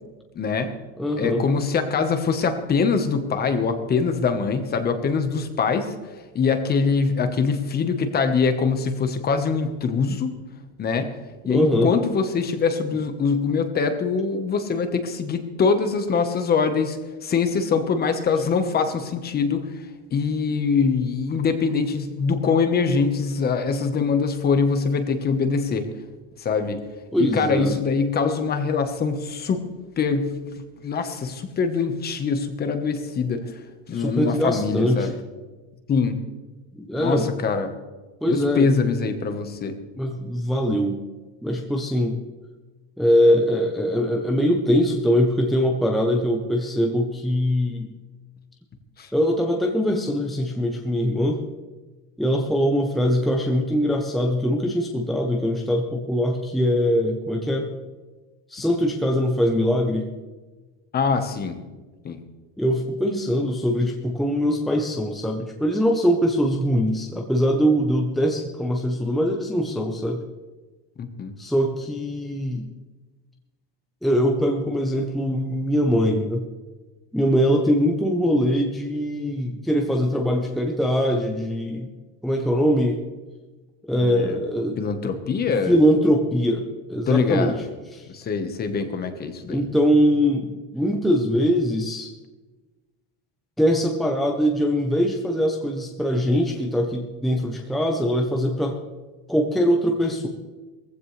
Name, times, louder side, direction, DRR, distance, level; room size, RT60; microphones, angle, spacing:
voice 1, 0.3-0.7 1.2-5.9 6.3-10.3 10.8-11.1 11.4-19.7 20.1-25.8 26.4-26.8 27.2-29.6 30.0-33.4 33.9-35.1 35.9-36.2 37.0-37.7 38.2-39.8 49.0-49.1 60.9-61.6 62.0-62.2 71.0-71.3 84.0-84.4 84.8-85.8 87.1-87.6 88.1-89.7, left 5 dB, 25° left, 8 dB, 1.3 m, -23 dB
voice 2, 1.0-1.4 11.5-11.9 27.1-27.8 33.9-35.1 36.7-37.3 38.2-38.7 40.0-41.0 41.4-42.2 43.0-47.9 49.1-51.4 52.2-57.7 58.5-60.1 62.6-70.2 71.4-72.7 74.0-76.4 77.1-81.9 82.2-83.0 83.9-84.8 85.7-86.6 86.9-87.6 87.9-88.1 89.5-92.1 93.6-98.8 99.3-100.3, equal, ahead, 1 dB, 0.9 m, -22 dB
18.5 x 15.5 x 3.4 m, 1.2 s
cardioid pair, 155°, 36 cm